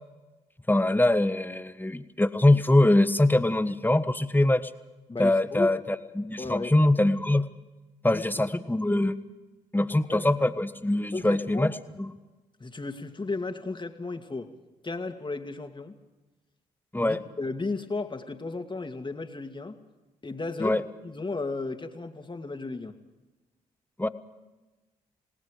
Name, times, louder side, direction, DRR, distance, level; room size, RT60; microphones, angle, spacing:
voice 1, 0.7-4.7 5.2-7.5 8.0-9.1 9.7-11.7 12.0-12.1 16.9-17.2 20.6-20.8 24.0-24.1, left 1 dB, 10° left, 11 dB, 1.4 m, -23 dB
voice 2, 5.1-5.7 6.4-6.7 8.1-8.3 10.1-10.3 11.1-11.7 12.6-14.5 14.8-15.9 17.0-19.8 20.2-20.8 21.0-22.9, left 3 dB, 30° left, 6 dB, 2.5 m, -34 dB
28.0 x 18.5 x 5.1 m, 1.1 s
hypercardioid pair, 45°, 17 cm